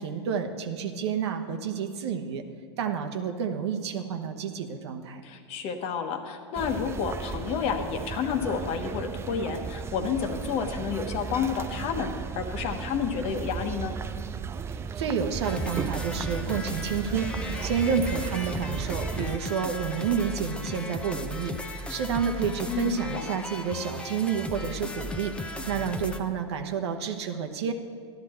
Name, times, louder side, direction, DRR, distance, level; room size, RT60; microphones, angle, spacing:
voice 1, 0.0-2.4 2.8-5.2 14.7-27.7, right 7 dB, 70° right, 5 dB, 1.0 m, -30 dB
voice 2, 5.2-12.1 12.3-13.9 22.7-23.3, left 6 dB, 45° left, 6 dB, 1.2 m, -30 dB
sound 1, 6.6-19.4, right 6 dB, 20° right, 0.4 m, -35 dB
sound 2, 15.4-26.2, left 2 dB, 5° left, 0.7 m, -36 dB
12.0 x 12.0 x 4.4 m, 2.1 s
hypercardioid pair, 105°, 14 cm